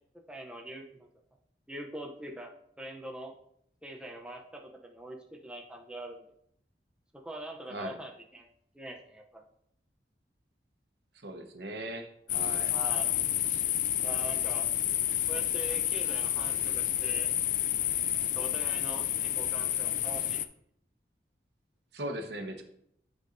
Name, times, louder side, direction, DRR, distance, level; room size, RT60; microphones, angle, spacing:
voice 1, 0.3-1.1 1.7-2.5 2.8-3.3 3.8-6.2 7.1-8.5 8.7-9.4 12.7-13.2 14.0-14.7 15.3-17.3 18.2-20.5, right 1 dB, 5° right, 0 dB, 0.5 m, -43 dB
voice 2, 11.1-12.7 21.9-22.6, right 1 dB, 65° right, 4 dB, 1.0 m, -39 dB
sound 1, 12.3-20.4, left 12 dB, 45° left, 0.3 m, -30 dB
9.4 x 5.3 x 2.6 m, 0.71 s
head